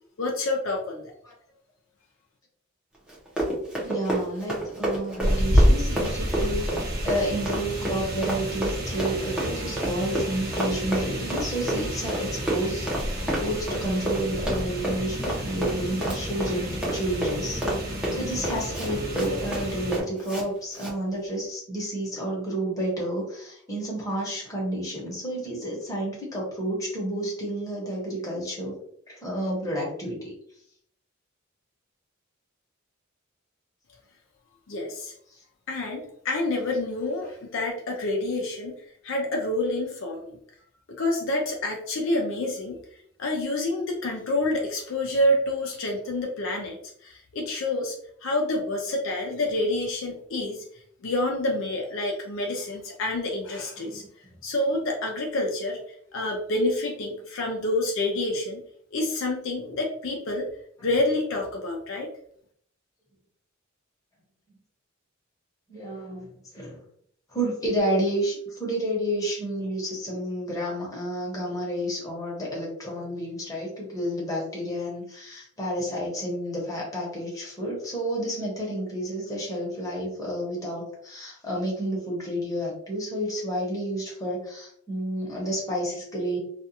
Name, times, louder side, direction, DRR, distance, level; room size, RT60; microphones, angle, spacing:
voice 1, 0.2-1.1 34.7-35.1 35.7-38.7 39.0-40.4 41.0-42.8 43.2-48.0 48.2-50.6 51.0-54.0 54.4-55.8 56.1-58.6 58.9-60.5 60.8-62.1, left 1 dB, 65° left, 1 dB, 0.5 m, -28 dB
Run, 3.1-20.4 20.7-20.9, right 1 dB, 5° right, 0.7 m, -30 dB
voice 2, 3.8-6.6 7.0-12.9 13.4-28.8 29.1-30.3 53.8-54.1 65.7-66.8 67.3-86.4, right 1 dB, 15° left, -3 dB, 0.9 m, -30 dB
sound 1, 5.2-20.0, equal, 50° right, 0.9 m, -29 dB
2.4 x 2.3 x 2.7 m, 0.66 s
head